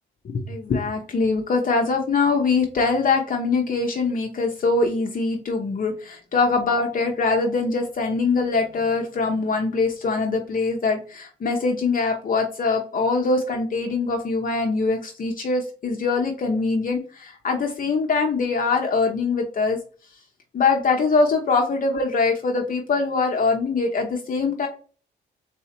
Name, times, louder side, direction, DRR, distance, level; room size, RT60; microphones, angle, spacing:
voice 1, 0.2-19.8 20.5-24.7, left 4 dB, 45° left, 2 dB, 0.8 m, -23 dB
4.1 x 2.7 x 4.3 m, 0.39 s
cardioid pair, 90°, 20 cm